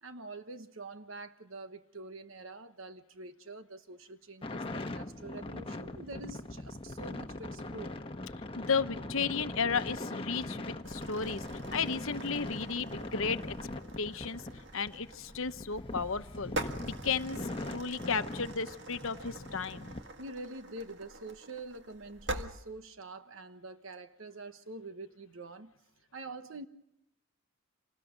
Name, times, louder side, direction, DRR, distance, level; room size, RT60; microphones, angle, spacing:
voice 1, 0.0-8.0 20.2-25.7 26.1-26.7, right 2 dB, 70° right, 9 dB, 1.2 m, -46 dB
sound 1, 4.4-20.0, left 2 dB, 25° left, 1.1 m, -41 dB
voice 2, 8.6-13.6 14.0-14.4 14.7-20.0, left 5 dB, 70° left, 11 dB, 1.0 m, -34 dB
sound 2, 10.8-22.5, right 2 dB, 55° right, 1.8 m, -45 dB
27.5 x 19.5 x 5.2 m, 0.84 s
head